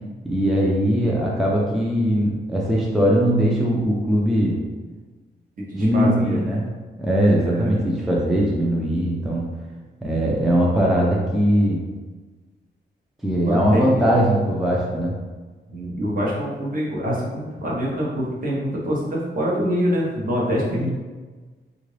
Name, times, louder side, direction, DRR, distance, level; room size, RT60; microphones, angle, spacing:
voice 1, 0.2-4.6 5.7-6.6 7.0-9.5 10.0-11.8 13.2-15.2 20.6-20.9, equal, ahead, -4 dB, 0.4 m, -20 dB
voice 2, 5.6-6.5 7.4-7.8 13.3-14.1 15.7-20.9, equal, 50° right, -4 dB, 0.9 m, -25 dB
3.6 x 2.5 x 3.2 m, 1.3 s
wide cardioid pair, 155°, 19 cm